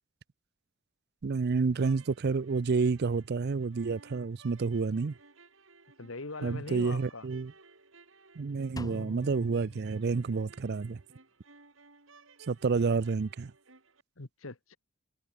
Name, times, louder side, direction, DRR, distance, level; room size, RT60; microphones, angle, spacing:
voice 1, 1.2-5.1 6.4-7.5 8.4-11.0 12.5-13.5, right 4 dB, 50° right, 0.5 m, -29 dB
sound 1, 1.7-14.0, right 4 dB, 70° right, 3.4 m, -58 dB
voice 2, 6.0-7.3 14.2-14.8, left 3 dB, 75° left, 1.6 m, -41 dB
Drum, 8.8-10.7, equal, 20° left, 4.1 m, -44 dB
head